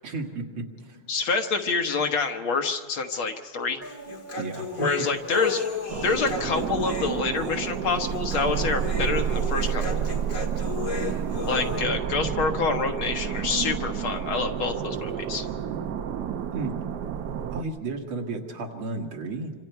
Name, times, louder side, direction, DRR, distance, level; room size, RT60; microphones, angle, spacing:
voice 1, 0.0-0.7 4.4-4.9 16.5-16.7 17.5-19.5, right 3 dB, 85° right, 2 dB, 2.7 m, -32 dB
voice 2, 1.1-3.8 4.8-5.6 6.0-10.1 11.4-15.5, left 4 dB, 75° left, 4 dB, 2.2 m, -27 dB
Human voice, 3.8-11.8, left 4 dB, 45° left, 2.2 m, -34 dB
sound 1, 5.9-17.6, right 8 dB, 65° right, 1.2 m, -30 dB
26.5 x 25.5 x 4.6 m, 1.5 s
omnidirectional pair, 2.3 m